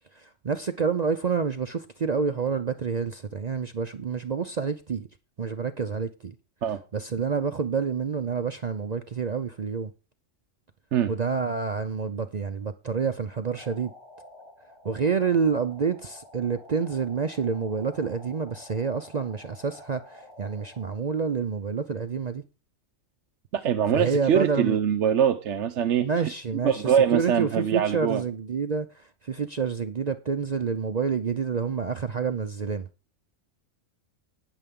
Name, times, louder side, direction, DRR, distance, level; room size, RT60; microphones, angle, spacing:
voice 1, 0.1-5.1 5.4-6.4 6.9-9.9 11.1-13.9 14.8-22.4 23.9-24.8 26.0-32.9, right 5 dB, 50° right, 0.5 m, -28 dB
sound 1, 13.5-20.9, left 1 dB, 65° left, 5.5 m, -50 dB
voice 2, 23.5-26.3 26.6-28.2, right 8 dB, 65° right, 1.0 m, -23 dB
19.0 x 6.8 x 3.7 m
omnidirectional pair, 1.4 m